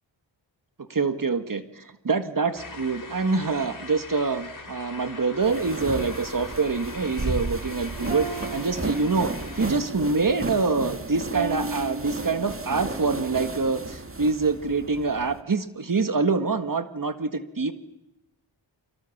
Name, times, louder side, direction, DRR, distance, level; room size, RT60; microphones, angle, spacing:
voice 1, 0.9-9.3 9.6-17.7, right 4 dB, 45° right, 10 dB, 1.7 m, -25 dB
sound 1, 2.5-9.7, left 4 dB, 40° left, 3.4 m, -41 dB
sound 2, 5.4-15.4, right 2 dB, 30° right, 2.2 m, -34 dB
sound 3, 8.1-9.7 11.3-12.8, right 3 dB, 75° right, 3.1 m, -35 dB
30.0 x 25.0 x 7.3 m, 0.92 s
wide cardioid pair, 80°, 46 cm